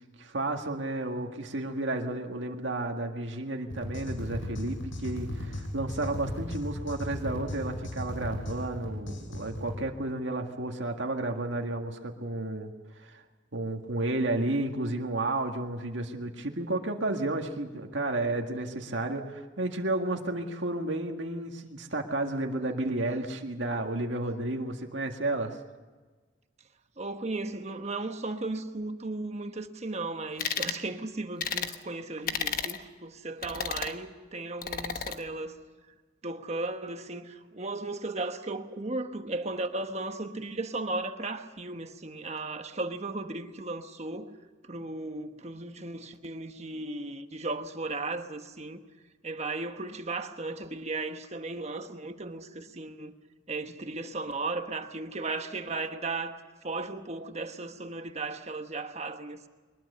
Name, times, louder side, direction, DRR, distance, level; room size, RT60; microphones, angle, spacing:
voice 1, 0.2-13.2 13.5-25.6, right 2 dB, 75° right, 1.9 m, -32 dB
sound 1, 3.7-9.8, left 1 dB, 90° left, 5.9 m, -36 dB
voice 2, 27.0-35.6 36.2-44.4 44.6-48.8 49.2-53.1 53.5-56.4 56.6-59.5, right 2 dB, 35° right, 1.2 m, -36 dB
sound 2, 30.4-30.8 31.4-31.8 32.3-32.8 33.4-34.0 34.6-35.2, left 7 dB, 50° left, 1.2 m, -32 dB
22.5 x 21.0 x 6.8 m
head